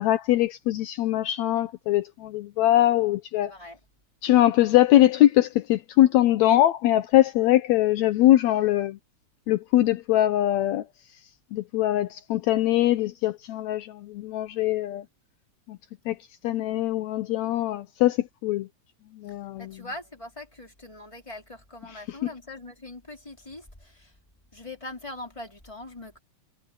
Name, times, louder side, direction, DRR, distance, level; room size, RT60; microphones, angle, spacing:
voice 1, 0.0-3.5 4.2-9.0 9.5-10.8 11.5-15.0 15.7-15.8 16.1-16.2 16.4-18.7 19.2-19.7, left 14 dB, 75° left, 2.0 m, -22 dB
voice 2, 3.4-3.8 19.6-24.1 24.5-26.2, left 1 dB, 10° left, 4.5 m, -41 dB
omnidirectional pair, 3.3 m